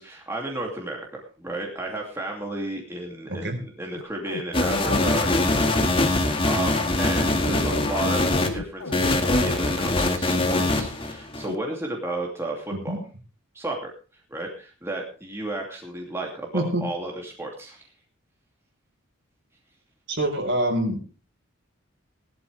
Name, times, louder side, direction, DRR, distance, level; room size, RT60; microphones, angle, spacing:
voice 1, 0.0-13.0 13.5-13.9 14.3-17.9, right 2 dB, 10° right, 0 dB, 2.7 m, -33 dB
sound 1, 4.0-5.2 7.3-9.6 10.3-10.9 11.4-11.6, left 3 dB, 85° left, 1.0 m, -33 dB
sound 2, 4.5-8.5 8.9-11.5, left 2 dB, 25° left, 1.9 m, -23 dB
voice 2, 20.1-21.0, right 1 dB, 55° right, 3 dB, 4.3 m, -25 dB
18.5 x 12.0 x 3.4 m, 0.35 s
head